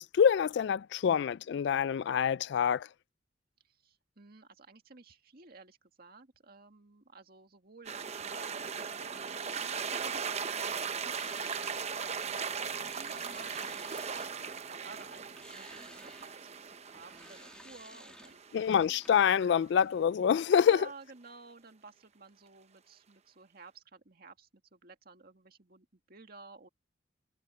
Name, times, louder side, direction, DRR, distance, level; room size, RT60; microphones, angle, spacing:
voice 1, 0.0-2.9 18.5-20.9, left 8 dB, 65° left, 0.3 m, -26 dB
voice 2, 3.6-18.4 20.6-26.7, right 3 dB, 55° right, 2.0 m, -54 dB
sound 1, 7.9-19.3, right 6 dB, 35° right, 0.8 m, -38 dB
sound 2, 11.1-14.6 14.9-19.2, left 1 dB, 5° left, 2.3 m, -56 dB
head